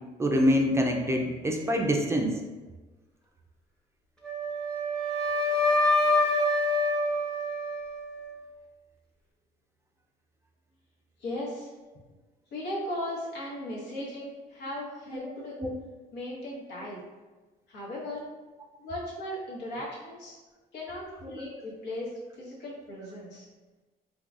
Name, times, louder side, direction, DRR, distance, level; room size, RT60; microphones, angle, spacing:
voice 1, 0.2-2.3 15.6-15.7, equal, 15° right, 1 dB, 0.4 m, -25 dB
Wind instrument woodwind instrument, 4.2-8.4, left 2 dB, 5° left, 0.7 m, -26 dB
voice 2, 11.2-11.7 12.5-15.6 16.1-17.0 17.7-18.2 18.8-20.4 20.7-23.4, left 1 dB, 80° left, -5 dB, 1.2 m, -37 dB
3.9 x 2.9 x 2.4 m, 1.2 s
cardioid pair, 110°, 17 cm